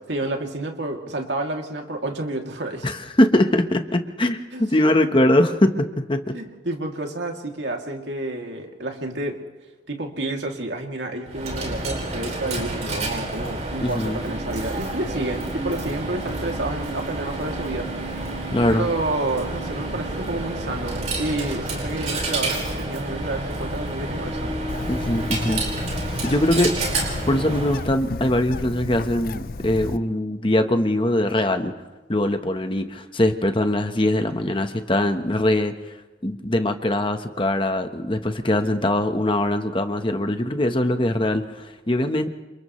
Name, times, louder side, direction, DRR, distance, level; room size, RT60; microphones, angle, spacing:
voice 1, 0.1-2.9 4.5-4.7 6.3-9.4 9.9-18.4 18.7-24.6 34.4-34.6, right 2 dB, 75° right, 2 dB, 2.8 m, -30 dB
voice 2, 2.8-6.3 13.8-14.2 18.5-18.9 24.9-25.6 26.2-31.7 32.1-35.7 36.2-42.3, left 1 dB, 30° left, 7 dB, 1.2 m, -22 dB
Coin (dropping), 11.3-27.9, right 2 dB, 40° right, 5.1 m, -29 dB
Bird, 24.7-30.0, left 3 dB, 50° left, 0.5 m, -33 dB
29.0 x 28.0 x 3.2 m, 1.2 s
head